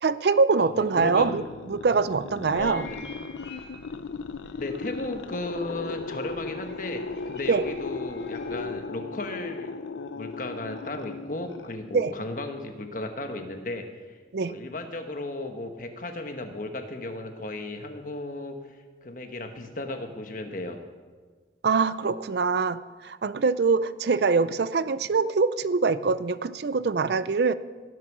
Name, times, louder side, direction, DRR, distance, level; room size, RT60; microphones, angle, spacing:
voice 1, 0.0-1.4 1.7-2.8 7.5-7.6 11.9-12.1 14.3-14.5 21.6-27.5, right 4 dB, 60° right, 15 dB, 0.4 m, -24 dB
voice 2, 0.6-1.4 2.5-3.0 4.6-9.7 10.1-14.2 14.5-20.8, left 2 dB, 45° left, 5 dB, 1.2 m, -35 dB
sound 1, 1.0-12.1, left 4 dB, 90° left, 0.6 m, -37 dB
sound 2, 2.5-8.8, left 2 dB, 75° left, 2.2 m, -49 dB
16.5 x 8.1 x 6.2 m, 1.5 s
head